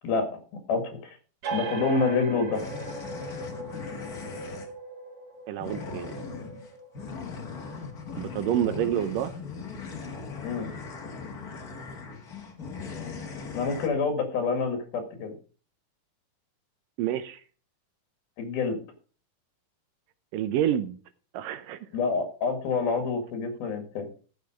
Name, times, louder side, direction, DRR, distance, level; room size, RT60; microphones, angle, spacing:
voice 1, 0.7-1.2 1.5-2.7 10.4-10.7 13.5-15.4 18.4-18.8 21.9-24.1, left 4 dB, 90° left, 6 dB, 3.8 m, -27 dB
sound 1, 1.4-8.6, right 3 dB, 55° right, 2.8 m, -39 dB
sound 2, 2.5-4.7 5.6-13.9, left 5 dB, 45° left, 1.2 m, -39 dB
voice 2, 5.5-6.1 8.2-9.3 17.0-17.4 20.3-21.0 21.3-21.8, right 11 dB, 75° right, 12 dB, 2.2 m, -28 dB
14.0 x 6.8 x 5.0 m, 0.39 s
omnidirectional pair, 4.2 m